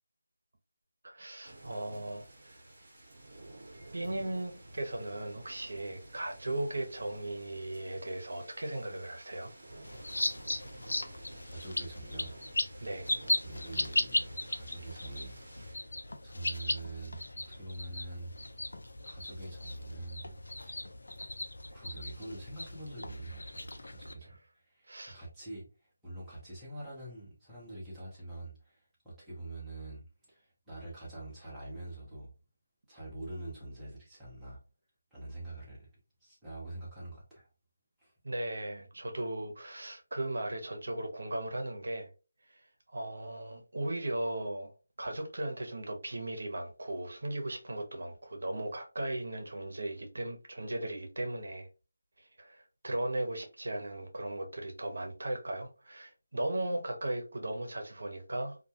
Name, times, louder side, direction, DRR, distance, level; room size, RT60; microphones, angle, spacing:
voice 1, 1.0-2.6 3.9-9.5 12.8-13.1 24.9-25.2 38.2-42.1 42.9-44.7 45.0-51.7 52.4-58.6, right 1 dB, 65° right, 0.7 m, -37 dB
sound 1, 1.4-15.7, right 1 dB, 35° right, 0.9 m, -52 dB
sound 2, 9.8-24.1, left 1 dB, 80° left, 0.4 m, -37 dB
voice 2, 11.5-12.3 12.8-13.0 13.3-15.3 15.6-16.0 16.2-18.3 19.0-20.3 20.6-20.8 21.7-32.3 32.9-34.6 35.1-35.9 36.2-37.5 38.0-38.1, right 2 dB, 5° right, 0.7 m, -45 dB
2.2 x 2.2 x 2.8 m
figure-of-eight pair, 175°, 0 cm